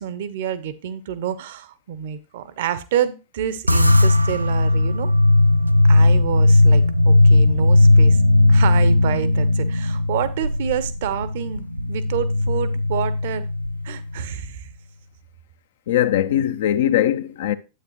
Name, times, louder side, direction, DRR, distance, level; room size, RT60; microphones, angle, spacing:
voice 1, 0.0-5.1 5.9-8.2 8.5-13.5 13.8-14.7, right 10 dB, 55° right, 0.7 m, -28 dB
sound 1, 3.7-14.3, left 2 dB, 85° right, 0.4 m, -17 dB
voice 2, 15.9-17.6, left 11 dB, 60° left, 0.6 m, -20 dB
9.3 x 8.3 x 3.1 m
figure-of-eight pair, 90°, 0 cm